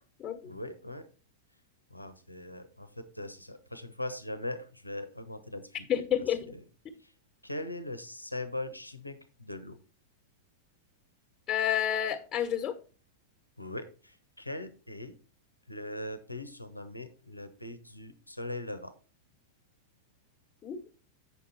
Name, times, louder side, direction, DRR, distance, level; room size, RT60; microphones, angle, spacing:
voice 1, 0.4-1.1 1.9-5.9 6.5-6.6 7.0-7.1 7.4-9.8 13.6-15.1 15.7-18.9, left 1 dB, 85° left, 10 dB, 1.0 m, -40 dB
voice 2, 5.9-6.4 11.5-12.7 20.6-20.9, left 10 dB, 25° left, 4 dB, 1.4 m, -29 dB
8.6 x 6.5 x 4.1 m, 0.35 s
figure-of-eight pair, 90°, 0 cm